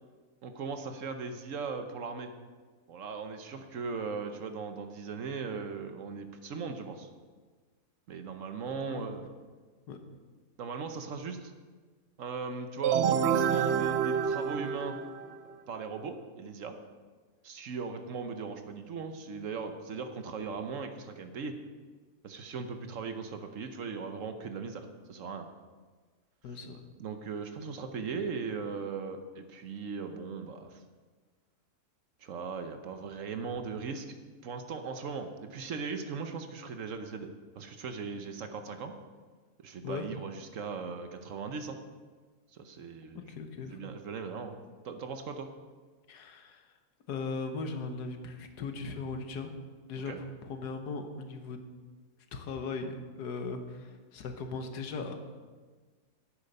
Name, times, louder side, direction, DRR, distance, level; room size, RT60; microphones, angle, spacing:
voice 1, 0.4-2.3 2.9-7.1 8.1-9.2 10.6-11.5 12.2-15.0 15.7-16.8 17.4-21.6 22.2-25.5 27.0-30.8 32.2-34.2 34.4-37.3 37.5-38.9 39.6-41.8 42.5-43.3 43.7-44.5 44.8-45.5 50.1-50.2, right 5 dB, 60° right, 7 dB, 1.1 m, -38 dB
sound 1, 12.8-15.5, right 8 dB, 80° right, 0.6 m, -28 dB
voice 2, 26.4-26.8 39.8-40.1 43.3-43.8 46.1-46.6 47.1-49.5 49.9-51.6 52.3-55.2, left 4 dB, 85° left, 6 dB, 1.6 m, -38 dB
9.9 x 8.8 x 5.4 m, 1.4 s
omnidirectional pair, 1.7 m